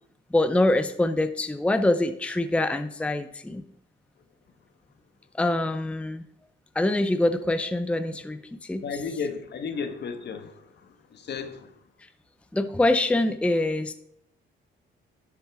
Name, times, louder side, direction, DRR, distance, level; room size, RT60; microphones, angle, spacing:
voice 1, 0.3-3.6 5.4-6.2 6.8-8.8 12.5-13.9, left 2 dB, 5° left, 0.5 m, -24 dB
voice 2, 8.8-11.8, left 5 dB, 60° left, 1.2 m, -34 dB
11.5 x 8.0 x 3.5 m
cardioid pair, 90°, 20 cm